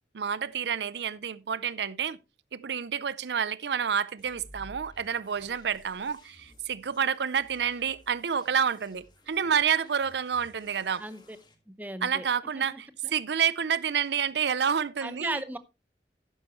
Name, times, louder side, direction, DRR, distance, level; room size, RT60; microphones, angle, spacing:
voice 1, 0.1-2.2 2.5-11.0 12.0-15.4, right 7 dB, 75° right, 0.5 m, -29 dB
sound 1, 4.2-11.6, left 1 dB, 25° left, 1.8 m, -55 dB
voice 2, 11.0-11.4 11.7-12.3 12.5-13.1 15.0-15.6, right 1 dB, 10° right, 0.8 m, -37 dB
12.0 x 9.7 x 3.1 m
head